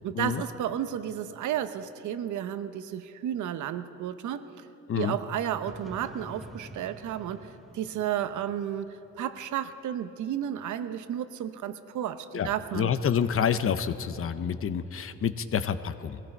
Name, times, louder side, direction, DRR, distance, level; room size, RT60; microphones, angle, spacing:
voice 1, 0.0-4.7 5.0-12.9, right 10 dB, 75° right, 12 dB, 0.8 m, -32 dB
sound 1, 5.7-9.5, equal, ahead, 1.2 m, -48 dB
voice 2, 12.3-16.2, left 7 dB, 45° left, 12 dB, 0.7 m, -28 dB
20.5 x 16.0 x 4.4 m, 2.9 s
cardioid pair, 90°, 30 cm